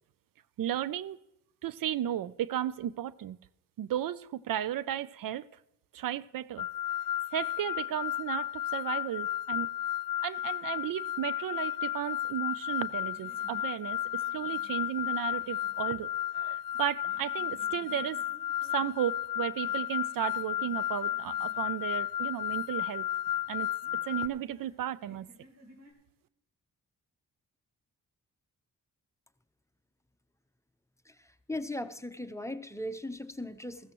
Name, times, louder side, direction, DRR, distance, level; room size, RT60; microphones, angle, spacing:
voice 1, 0.6-1.2 1.6-3.4 3.8-5.5 5.9-6.7 7.3-9.7 10.2-14.0 14.3-18.2 18.7-23.1 23.5-23.7 24.0-25.3, right 11 dB, 70° right, 17 dB, 0.5 m, -34 dB
sound 1, 6.6-24.3, left 12 dB, 70° left, 0.5 m, -33 dB
sound 2, 12.6-25.9, equal, 50° right, 3.5 m, -59 dB
voice 2, 31.1-33.9, left 1 dB, 10° left, 10 dB, 0.7 m, -38 dB
14.5 x 13.5 x 3.0 m, 0.86 s
cardioid pair, 65°, 35 cm